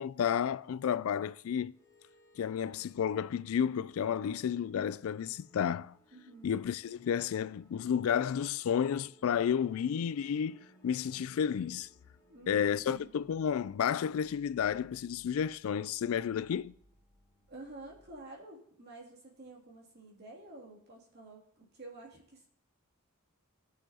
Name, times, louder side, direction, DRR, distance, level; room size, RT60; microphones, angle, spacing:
voice 1, 0.0-1.8 2.4-6.0 6.4-11.9 12.5-16.7, left 8 dB, 70° left, 0.3 m, -31 dB
sound 1, 1.7-18.3, equal, 15° left, 1.2 m, -65 dB
voice 2, 6.1-6.5 12.3-13.1 17.5-22.5, right 2 dB, 50° right, 2.8 m, -50 dB
19.5 x 6.6 x 2.9 m
head